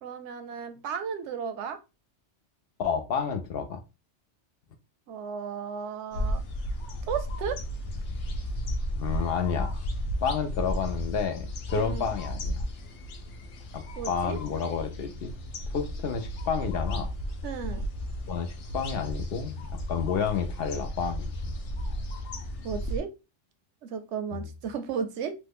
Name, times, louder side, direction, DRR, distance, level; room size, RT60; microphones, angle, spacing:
voice 1, 0.0-1.8 5.1-6.4 7.1-7.6 11.7-12.1 14.0-14.4 17.4-17.9 22.6-23.1 23.8-25.3, right 7 dB, 80° right, 0.9 m, -34 dB
voice 2, 2.8-3.8 8.9-9.8 10.2-12.7 13.7-15.3 15.7-17.1 18.3-21.3 24.3-24.4, left 6 dB, 65° left, 0.7 m, -30 dB
sound 1, 6.1-23.0, equal, 85° left, 1.0 m, -34 dB
3.1 x 2.1 x 3.3 m
omnidirectional pair, 1.2 m